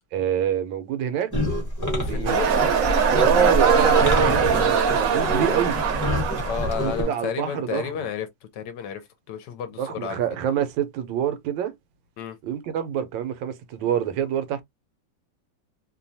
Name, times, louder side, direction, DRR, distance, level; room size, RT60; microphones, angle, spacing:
voice 1, 0.1-1.3 2.0-2.4 2.7-2.9 3.2-5.8 6.7-7.9 9.8-11.7 12.4-14.6, right 9 dB, 85° right, 1.3 m, -26 dB
sound 1, 1.3-7.0, equal, 15° left, 0.8 m, -27 dB
voice 2, 2.0-2.6 5.4-5.7 6.4-8.3 8.5-10.2 12.2-12.4, left 7 dB, 75° left, 1.2 m, -32 dB
sound 2, 2.3-7.1, right 6 dB, 65° right, 0.9 m, -21 dB
3.1 x 2.2 x 2.6 m
omnidirectional pair, 2.0 m